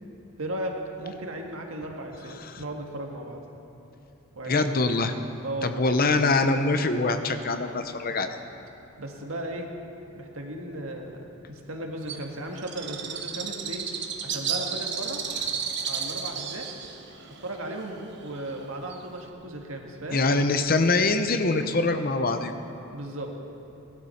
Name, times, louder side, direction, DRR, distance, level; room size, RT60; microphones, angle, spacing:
voice 1, 0.4-3.4 4.3-4.9 5.4-5.8 9.0-9.7 10.1-13.8 14.2-15.2 15.9-16.7 17.4-20.2 22.9-23.3, right 1 dB, 75° right, 2 dB, 1.7 m, -36 dB
voice 2, 4.5-5.1 5.6-8.3 20.1-22.5, left 3 dB, 45° left, 8 dB, 0.8 m, -24 dB
Bird, 12.1-19.3, right 6 dB, 55° right, 1.1 m, -33 dB
17.0 x 12.0 x 5.8 m, 3.0 s
head